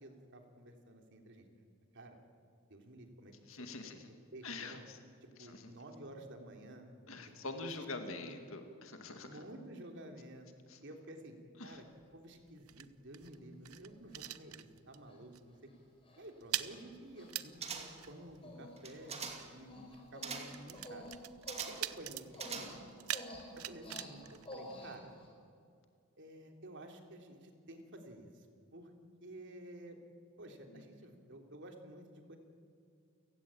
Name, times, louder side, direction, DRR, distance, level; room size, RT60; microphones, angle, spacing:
voice 1, 0.0-1.5 1.9-2.2 2.7-3.6 4.1-4.8 5.2-6.9 7.8-7.9 8.2-8.4 9.2-10.5 10.8-11.3 11.6-11.8 12.1-15.7 16.2-21.1 21.6-22.7 23.6-25.1 26.2-28.5 28.7-28.9 29.2-30.0 30.4-32.4, right 1 dB, 55° right, 4 dB, 3.3 m, -52 dB
voice 2, 3.5-4.1 4.4-5.0 5.4-5.7 7.1-9.4 10.7-10.8 11.6-11.8 19.8-19.9 30.7-30.8, left 3 dB, 65° left, 6 dB, 2.2 m, -45 dB
sound 1, 11.7-15.1 15.3-15.6 15.9-25.3, right 13 dB, 80° right, 0.9 m, -45 dB
Human voice, 13.3-13.4 14.1-14.5 15.1-15.2 15.5-15.7 16.0-16.2 16.6-16.8 17.2-18.1 18.4-18.7 19.0-25.3, left 1 dB, 25° left, 5.1 m, -51 dB
sound 2, 17.6-18.1 18.8-19.6 20.2-20.6 21.5-21.9 22.3-23.0 23.3-23.4, right 5 dB, 30° right, 2.3 m, -44 dB
30.0 x 16.5 x 8.7 m, 2.3 s
head